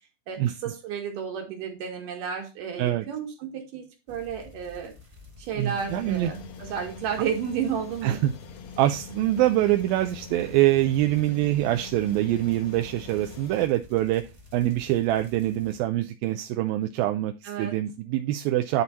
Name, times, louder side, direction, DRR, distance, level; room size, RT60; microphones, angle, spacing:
voice 1, 0.3-4.9 5.4-8.2 17.4-17.8, right 7 dB, 65° right, 3.3 m, -32 dB
sound 1, 4.1-15.8, left 3 dB, 20° right, 0.7 m, -51 dB
voice 2, 5.6-6.3 8.0-8.3 8.8-18.8, right 14 dB, 85° right, 2.4 m, -24 dB
sound 2, 5.7-13.7, left 5 dB, 70° left, 1.7 m, -44 dB
11.0 x 4.4 x 4.1 m
omnidirectional pair, 4.2 m